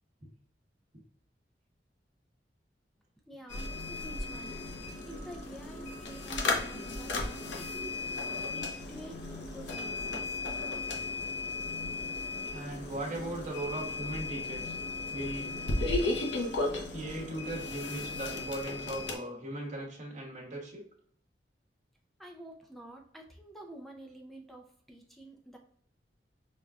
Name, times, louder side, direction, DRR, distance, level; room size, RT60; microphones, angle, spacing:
voice 1, 3.3-7.9 8.2-10.4 12.0-12.1 22.2-25.6, right 1 dB, ahead, 1 dB, 0.4 m, -49 dB
sound 1, 3.5-19.2, left 3 dB, 80° left, 0.6 m, -35 dB
voice 2, 12.5-14.7 15.1-15.6 16.7-20.8, right 1 dB, 45° right, -2 dB, 1.0 m, -38 dB
5.1 x 2.2 x 2.4 m, 0.62 s
head